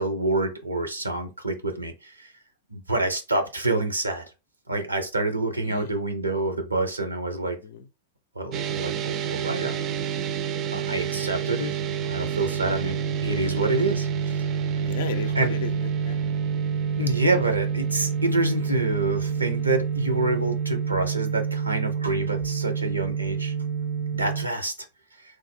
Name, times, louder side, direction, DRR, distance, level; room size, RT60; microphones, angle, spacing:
voice 1, 0.0-2.3 2.7-4.3 4.7-7.6 8.4-9.9 10.7-14.5 15.4-15.5 17.0-23.5 24.1-24.7, right 2 dB, 80° right, 0.6 m, -27 dB
voice 2, 5.5-6.0 7.4-7.9 12.6-13.1 14.8-16.2, left 6 dB, 60° left, 0.4 m, -36 dB
sound 1, 8.5-24.5, right 7 dB, 35° right, 0.4 m, -28 dB
3.1 x 2.0 x 3.5 m
figure-of-eight pair, 90°, 0 cm